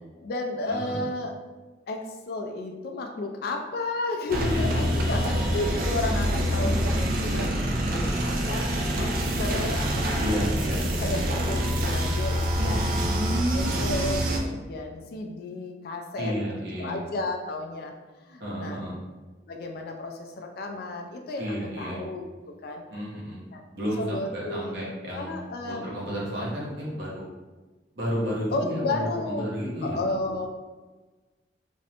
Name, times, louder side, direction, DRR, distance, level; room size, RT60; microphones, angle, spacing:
voice 1, 0.0-1.3 1.9-17.9 18.2-18.8 19.5-22.8 23.5-23.6 24.0-24.7 25.1-25.8 28.5-29.5 29.8-30.5, left 2 dB, 60° left, 3 dB, 0.3 m, -33 dB
voice 2, 0.7-1.0 4.7-5.2 6.3-7.0 10.2-11.2 12.6-13.5 16.2-17.0 18.4-19.0 21.4-22.0 22.9-23.5 23.7-27.2 27.9-30.0, equal, 70° right, -5 dB, 0.8 m, -32 dB
sound 1, 4.3-14.4, equal, 55° right, 0.3 m, -26 dB
2.5 x 2.1 x 2.8 m, 1.3 s
head